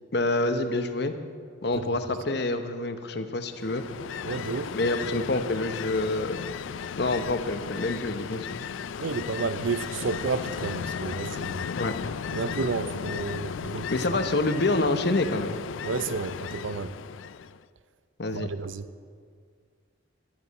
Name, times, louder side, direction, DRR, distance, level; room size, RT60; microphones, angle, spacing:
voice 1, 0.1-1.1 1.6-3.8 4.7-6.5 7.0-8.7 11.8-11.9 13.9-15.6 18.2-18.5, left 2 dB, 55° left, 0.9 m, -27 dB
Ocean, 3.5-17.6, left 7 dB, 80° left, 0.4 m, -35 dB
voice 2, 4.2-4.7 9.0-11.7 12.3-13.9 15.8-16.9 18.3-18.9, right 4 dB, 80° right, 0.6 m, -31 dB
19.5 x 11.5 x 4.1 m
head